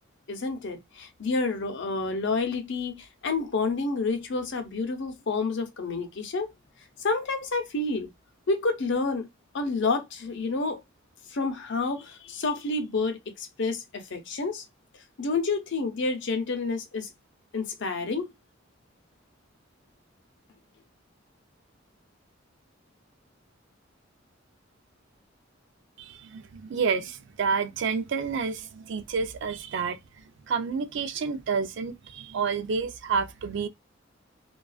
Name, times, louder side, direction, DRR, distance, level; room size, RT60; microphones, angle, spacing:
voice 1, 0.3-6.5 7.0-8.1 8.5-9.3 9.5-10.8 11.3-14.6 15.2-17.1 17.5-18.3, left 3 dB, 65° left, 0.6 m, -29 dB
voice 2, 26.0-30.0 30.5-33.7, right 5 dB, 65° right, 0.4 m, -29 dB
2.3 x 2.3 x 2.3 m
head